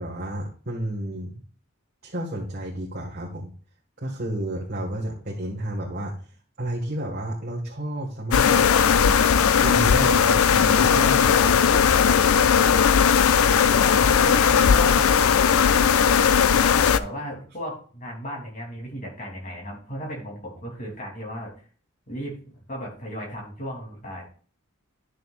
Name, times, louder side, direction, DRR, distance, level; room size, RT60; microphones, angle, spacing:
voice 1, 0.0-1.4 2.0-3.5 4.0-6.1 6.6-9.0 9.6-12.0, right 1 dB, 45° right, -5 dB, 1.7 m, -31 dB
sound 1, 8.3-17.0, left 7 dB, 75° left, 0.5 m, -18 dB
voice 2, 13.4-15.6 16.6-21.6 22.1-24.3, equal, 35° left, -1 dB, 3.1 m, -36 dB
12.0 x 6.5 x 2.5 m, 0.42 s
head